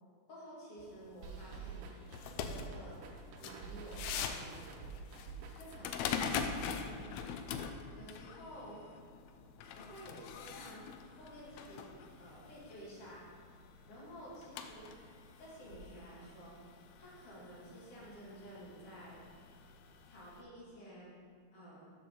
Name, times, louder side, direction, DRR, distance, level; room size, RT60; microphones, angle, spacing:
voice 1, 0.3-1.9 2.2-3.1 3.4-4.9 5.5-7.1 8.0-8.8 9.7-10.9 11.2-13.2 13.9-14.9 15.4-16.6 17.0-19.2 20.0-21.1 21.5-21.9, equal, 55° left, -7 dB, 2.9 m, -52 dB
sound 1, 0.8-20.4, left 7 dB, 80° left, 1.7 m, -44 dB
sound 2, 1.2-6.2, right 5 dB, 75° right, 1.4 m, -48 dB
13.0 x 4.6 x 3.8 m, 2.2 s
omnidirectional pair, 3.4 m